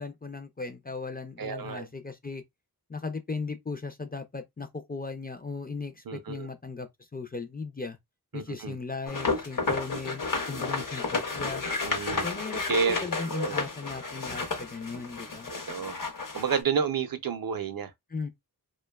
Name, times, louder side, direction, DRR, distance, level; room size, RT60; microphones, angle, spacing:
voice 1, 0.0-2.4 2.9-8.0 8.3-11.6 12.2-15.5 18.1-18.3, left 4 dB, 25° left, 0.3 m, -37 dB
voice 2, 1.4-1.9 6.1-6.5 8.3-8.8 11.8-12.3 12.6-13.0 13.3-13.6 15.7-16.0 16.3-17.9, right 6 dB, 65° right, 0.5 m, -30 dB
sound 1, 9.1-16.6, left 3 dB, 55° left, 0.7 m, -32 dB
2.7 x 2.2 x 2.2 m
wide cardioid pair, 65°, 38 cm